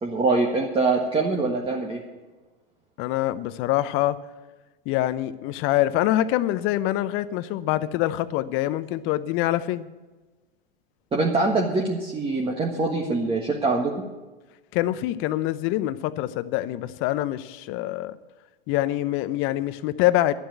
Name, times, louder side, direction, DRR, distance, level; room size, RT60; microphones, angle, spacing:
voice 1, 0.0-2.0 11.1-13.9, right 3 dB, 20° right, -1 dB, 1.6 m, -24 dB
voice 2, 3.0-4.2 4.9-9.9 14.7-18.2 18.7-20.3, left 14 dB, 45° left, 15 dB, 0.8 m, -25 dB
12.0 x 7.9 x 9.1 m, 1.2 s
hypercardioid pair, 100°, 29 cm